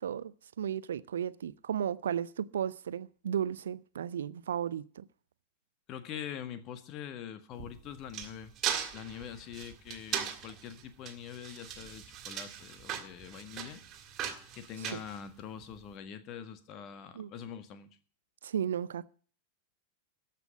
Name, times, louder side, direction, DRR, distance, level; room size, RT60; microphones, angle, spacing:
voice 1, 0.0-5.0 14.8-15.0 17.1-17.3 18.4-19.1, right 9 dB, 65° right, 0.6 m, -34 dB
voice 2, 5.9-8.5 8.9-13.8 14.5-17.9, left 9 dB, 35° left, 1.6 m, -44 dB
sound 1, 7.5-15.8, right 9 dB, 30° right, 2.2 m, -39 dB
14.0 x 6.0 x 10.0 m
figure-of-eight pair, 90°, 0 cm